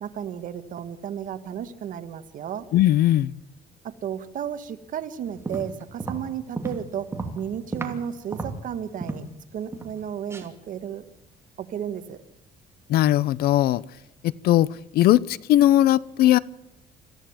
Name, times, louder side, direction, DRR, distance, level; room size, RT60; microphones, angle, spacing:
voice 1, 0.0-2.6 3.8-7.1 7.3-9.3 9.5-11.0 11.6-12.2, right 9 dB, 55° right, 1.7 m, -33 dB
voice 2, 2.7-3.3 12.9-13.8 14.2-14.7 14.9-16.4, left 13 dB, 70° left, 0.7 m, -19 dB
sound 1, 5.3-8.0 8.3-9.3 9.7-10.0 10.3-10.5, right 3 dB, 15° right, 2.7 m, -33 dB
26.0 x 14.5 x 7.2 m
cardioid pair, 125°, 17 cm